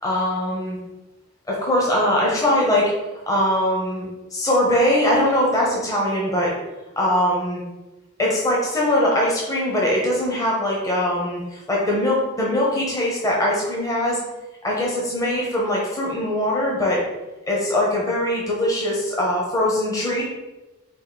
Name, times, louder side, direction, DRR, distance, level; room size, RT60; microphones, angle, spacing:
voice 1, 0.0-0.8 1.5-2.9 3.3-6.5 7.0-7.6 8.2-14.2 14.6-17.0 17.5-20.2, left 1 dB, 15° left, -4 dB, 0.8 m, -21 dB
4.8 x 2.5 x 4.0 m, 1.1 s
head